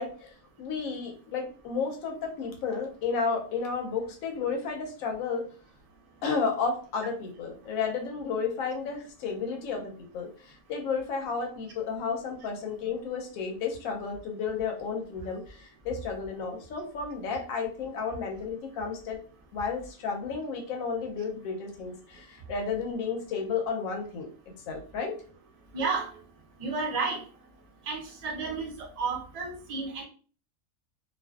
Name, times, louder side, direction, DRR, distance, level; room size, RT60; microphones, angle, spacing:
voice 1, 0.0-5.4 6.2-19.2 19.5-24.3 24.7-25.1, left 5 dB, 80° left, 2 dB, 1.0 m, -32 dB
voice 2, 25.7-26.1 26.6-27.2 27.9-28.7 29.0-30.0, right 4 dB, 60° right, 0 dB, 0.4 m, -31 dB
2.4 x 2.2 x 2.3 m, 0.41 s
omnidirectional pair, 1.4 m